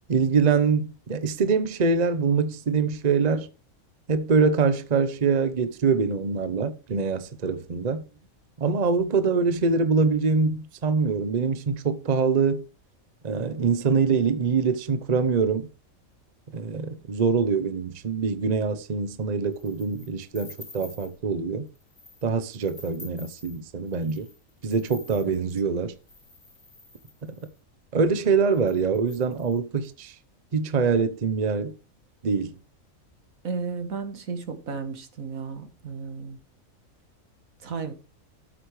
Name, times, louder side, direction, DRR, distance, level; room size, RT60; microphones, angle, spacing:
voice 1, 0.1-3.5 4.1-8.0 8.6-12.6 13.2-15.7 16.5-21.7 22.2-24.3 24.6-25.9 27.9-30.1 30.5-31.7 32.2-32.5, right 5 dB, 35° right, 0.8 m, -24 dB
sound 1, 19.5-21.2 21.7-22.2 22.5-27.6 28.2-28.3 28.5-30.0, left 3 dB, 40° left, 2.5 m, -49 dB
voice 2, 33.4-36.4 37.6-37.9, right 5 dB, 80° right, 2.0 m, -34 dB
12.5 x 8.2 x 3.2 m
omnidirectional pair, 1.4 m